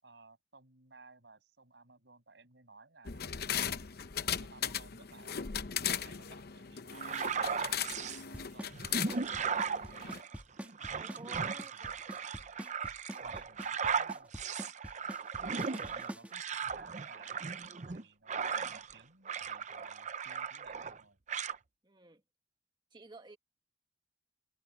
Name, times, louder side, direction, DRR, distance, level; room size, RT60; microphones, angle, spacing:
voice 1, 0.0-3.5 4.3-5.5 5.8-7.6 8.1-8.9 10.8-12.2 13.2-14.3 15.8-17.5 17.9-21.2, right 3 dB, 65° right, 6.9 m, -58 dB
sound 1, 3.0-10.2, left 9 dB, 55° left, 0.8 m, -38 dB
sound 2, 6.9-8.2 8.7-19.0 19.2-21.0 21.3-21.6, right 6 dB, 40° right, 0.7 m, -37 dB
Drum kit / Snare drum / Bass drum, 8.3-16.3, equal, 10° right, 1.9 m, -44 dB
voice 2, 10.9-12.0 15.9-16.2 21.8-22.2 22.9-23.4, right 2 dB, 25° right, 1.9 m, -53 dB
head